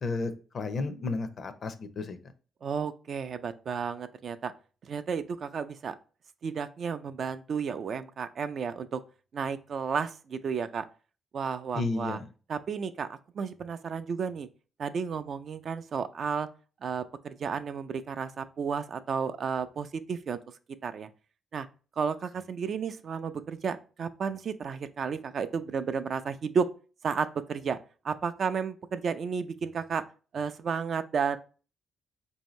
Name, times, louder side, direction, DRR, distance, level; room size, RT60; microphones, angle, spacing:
voice 1, 0.0-2.2 11.7-12.2, left 3 dB, 50° left, 10 dB, 0.5 m, -32 dB
voice 2, 2.6-4.5 4.8-5.9 6.4-9.0 9.3-10.8 11.3-12.2 12.5-14.5 14.8-16.5 16.8-20.4 20.8-21.1 21.5-21.7 22.0-26.7 27.0-27.8 28.0-30.0 30.3-31.4, right 6 dB, 55° right, 10 dB, 0.3 m, -32 dB
4.4 x 2.7 x 3.0 m, 0.36 s
cardioid pair, 95°, 0 cm